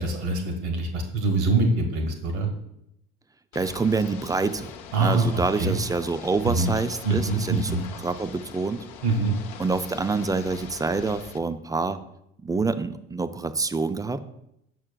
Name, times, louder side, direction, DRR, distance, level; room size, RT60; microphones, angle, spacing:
voice 1, 0.0-2.5 4.9-5.8 6.4-6.7 7.0-7.8 9.0-9.4, right 3 dB, 75° right, 3 dB, 1.4 m, -24 dB
Ocean / Boat Water vehicle, 3.5-11.4, left 7 dB, 65° left, 0.8 m, -42 dB
voice 2, 3.5-8.9 9.6-12.0 12.4-14.2, right 4 dB, 10° right, 11 dB, 0.3 m, -27 dB
7.5 x 6.3 x 2.3 m, 0.79 s
hypercardioid pair, 65°, 34 cm